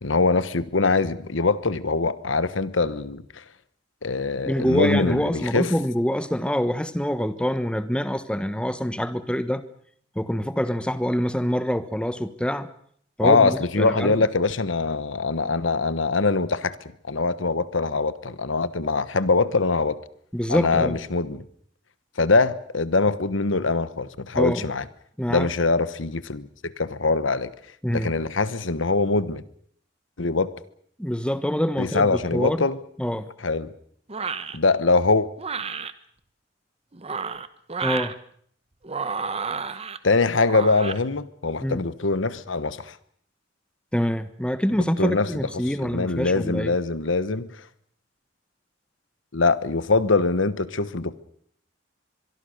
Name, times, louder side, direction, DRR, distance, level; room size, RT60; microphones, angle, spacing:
voice 1, 0.0-3.4 4.0-5.7 13.2-16.8 17.1-20.0 20.5-21.4 22.2-24.8 25.3-27.5 27.9-29.4 30.2-30.5 31.8-32.8 33.4-33.7 34.5-35.3 40.0-43.0 45.0-45.3 45.8-47.6 49.3-51.2, left 3 dB, 85° left, 1.2 m, -23 dB
voice 2, 4.4-9.6 10.1-12.7 13.2-14.1 20.3-21.0 24.4-24.6 25.2-25.5 27.8-28.1 31.0-32.7 33.0-33.3 37.8-38.1 41.6-41.8 43.9-46.7, equal, 5° left, 1.2 m, -25 dB
sound 1, 34.1-34.6 35.4-35.9 36.9-38.1 38.8-40.0 40.4-41.0, right 5 dB, 30° right, 1.1 m, -30 dB
24.0 x 23.0 x 6.6 m
head